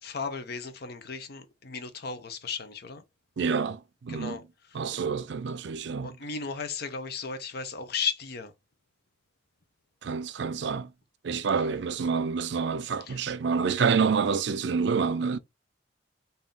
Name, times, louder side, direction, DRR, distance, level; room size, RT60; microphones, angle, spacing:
voice 1, 0.0-3.0 4.1-4.4 4.9-5.0 6.0-8.5 13.0-13.2, left 5 dB, 55° left, 0.7 m, -35 dB
voice 2, 3.4-4.4 4.7-6.1 10.0-10.9 11.2-15.4, right 5 dB, 65° right, 0.4 m, -28 dB
3.6 x 2.7 x 3.8 m
head